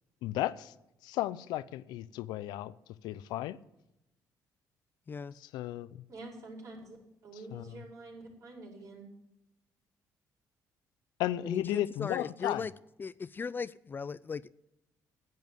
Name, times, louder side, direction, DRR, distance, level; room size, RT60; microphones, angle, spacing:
voice 1, 0.2-0.7 1.0-2.7 3.0-3.6 5.4-6.0 7.5-7.7 11.2-12.7, left 14 dB, 90° left, 0.5 m, -34 dB
voice 2, 6.1-7.0 7.2-9.1, right 2 dB, 55° right, 4.9 m, -47 dB
voice 3, 11.4-12.7 13.0-14.5, left 5 dB, 30° left, 0.3 m, -37 dB
10.5 x 9.5 x 7.8 m
cardioid pair, 95°, 7 cm